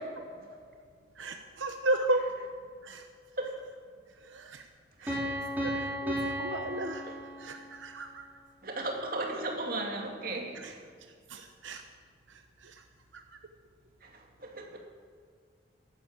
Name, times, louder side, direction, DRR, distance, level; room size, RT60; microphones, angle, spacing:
voice 1, 1.2-2.2 2.9-3.0 4.3-4.4 5.0-5.2 5.6-5.7 6.0-6.1 6.4-7.0 7.4-8.2 11.3-11.8, right 2 dB, 90° right, 5 dB, 0.9 m, -32 dB
voice 2, 5.0-6.3 7.0-7.2 8.6-10.8 14.0-14.8, right 2 dB, 50° right, 1 dB, 2.2 m, -37 dB
Piano, 5.1-7.8, equal, 10° right, 3.0 m, -34 dB
11.5 x 11.5 x 8.0 m, 2.1 s
head